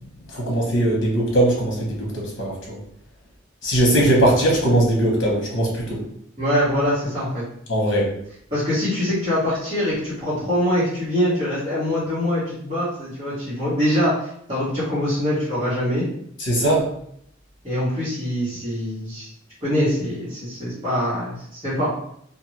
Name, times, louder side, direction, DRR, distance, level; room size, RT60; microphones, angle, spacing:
voice 1, 0.3-2.8 3.6-6.0 7.7-8.1 16.4-16.9, right 1 dB, 65° left, -2 dB, 1.0 m, -20 dB
voice 2, 6.4-7.4 8.5-16.0 17.6-19.3 19.6-21.9, equal, 25° right, -14 dB, 1.2 m, -23 dB
2.5 x 2.4 x 3.1 m, 0.69 s
head